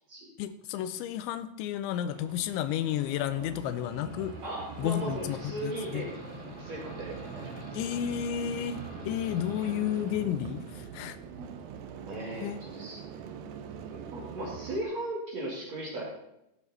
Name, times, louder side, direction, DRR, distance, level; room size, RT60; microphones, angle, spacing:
voice 1, 0.4-4.4 4.8-6.0 7.7-11.2 12.4-12.6, left 10 dB, 85° left, 12 dB, 3.0 m, -32 dB
sound 1, 2.1-14.8, right 8 dB, 90° right, 2.0 m, -44 dB
sound 2, 3.1-12.5, equal, 5° left, 1.7 m, -47 dB
voice 2, 4.4-6.1 6.4-7.8 12.0-13.3 13.9-16.0, right 1 dB, 45° right, -4 dB, 2.6 m, -37 dB
14.0 x 8.2 x 4.1 m, 0.84 s
omnidirectional pair, 5.3 m